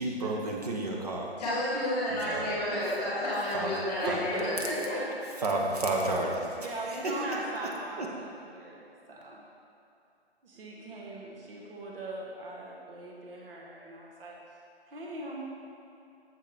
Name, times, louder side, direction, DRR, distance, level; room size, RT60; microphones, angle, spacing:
voice 1, 0.0-1.3 2.1-2.5 3.5-3.7 4.1-4.2 5.4-7.5 8.0-8.1, right 2 dB, 35° right, -1 dB, 0.8 m, -31 dB
voice 2, 1.4-5.0, left 1 dB, 10° left, -9 dB, 1.7 m, -31 dB
voice 3, 4.0-5.1 6.6-8.3 8.5-9.4 10.4-14.4 14.9-15.4, right 2 dB, 60° right, -2 dB, 1.2 m, -39 dB
7.3 x 6.2 x 3.4 m, 2.7 s
hypercardioid pair, 175°, 33 cm